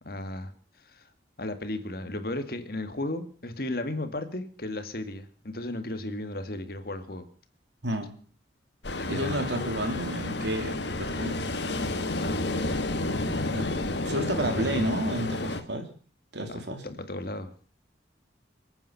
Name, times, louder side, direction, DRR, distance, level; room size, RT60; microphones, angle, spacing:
voice 1, 0.0-0.5 0.8-1.1 1.4-7.3 9.0-9.5 12.2-12.7 13.2-13.6 14.0-14.9 16.5-17.5, left 1 dB, 55° left, 8 dB, 1.9 m, -35 dB
Ocean, 8.8-15.6, left 2 dB, 70° left, 1.7 m, -31 dB
voice 2, 9.1-11.4 13.5-13.7 14.0-15.9 16.3-16.8, right 1 dB, 75° right, 6 dB, 3.0 m, -31 dB
27.5 x 9.2 x 5.7 m, 0.42 s
head